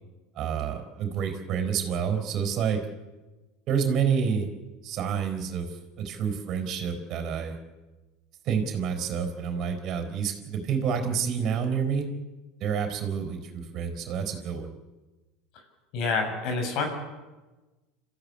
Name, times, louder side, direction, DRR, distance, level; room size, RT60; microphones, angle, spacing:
voice 1, 0.4-2.8 3.7-4.5 4.8-5.7 6.0-7.6 8.4-12.1 12.6-14.7, right 7 dB, 50° right, 6 dB, 4.2 m, -28 dB
voice 2, 15.9-16.9, left 4 dB, 60° left, 4 dB, 6.6 m, -27 dB
27.0 x 14.5 x 8.6 m, 1.2 s
hypercardioid pair, 95°, 0 cm